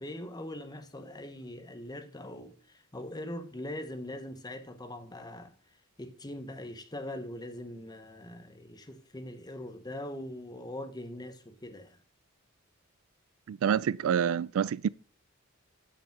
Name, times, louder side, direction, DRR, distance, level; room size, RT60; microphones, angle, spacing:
voice 1, 0.0-5.5 6.0-12.0, left 1 dB, 20° left, 1.0 m, -42 dB
voice 2, 13.5-14.9, right 8 dB, 75° right, 0.3 m, -27 dB
9.2 x 5.1 x 5.9 m
head